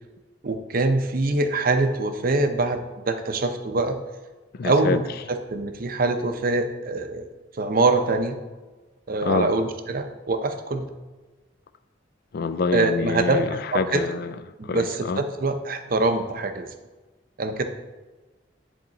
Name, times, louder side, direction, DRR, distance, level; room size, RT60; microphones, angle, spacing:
voice 1, 0.4-4.0 4.6-5.0 5.5-7.3 7.5-8.4 9.1-10.9 12.7-14.0 14.6-16.7 17.4-17.6, right 3 dB, 45° right, 7 dB, 0.6 m, -24 dB
voice 2, 4.5-5.0 9.2-9.5 12.3-14.4 14.6-15.2, left 4 dB, 50° left, 12 dB, 0.3 m, -26 dB
10.5 x 3.6 x 3.9 m, 1.2 s
head